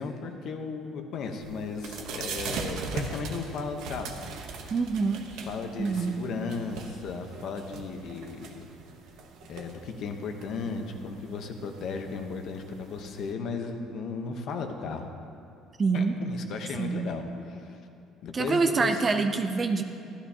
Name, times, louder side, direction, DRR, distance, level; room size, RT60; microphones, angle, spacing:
voice 1, 0.0-4.1 5.5-8.7 9.5-15.1 15.9-17.2 17.5-17.8 18.2-19.0, left 4 dB, 45° left, 5 dB, 0.9 m, -35 dB
sound 1, 1.4-13.3, right 4 dB, 60° right, 1.0 m, -40 dB
voice 2, 4.7-5.2 5.8-6.2 15.8-16.2 16.8-17.0 18.3-19.8, right 4 dB, 20° right, 6 dB, 0.4 m, -25 dB
14.5 x 13.0 x 2.8 m, 2.7 s
cardioid pair, 170°, 0 cm